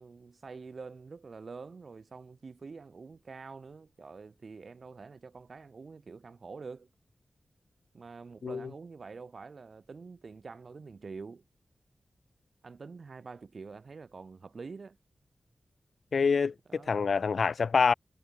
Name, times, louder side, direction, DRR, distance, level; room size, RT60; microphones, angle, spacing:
voice 1, 0.0-6.9 7.9-11.4 12.6-15.0 16.7-17.0, right 4 dB, 60° right, 5.7 m, -46 dB
voice 2, 16.1-17.9, left 5 dB, 75° left, 0.6 m, -26 dB
wide cardioid pair, 85°, 0 cm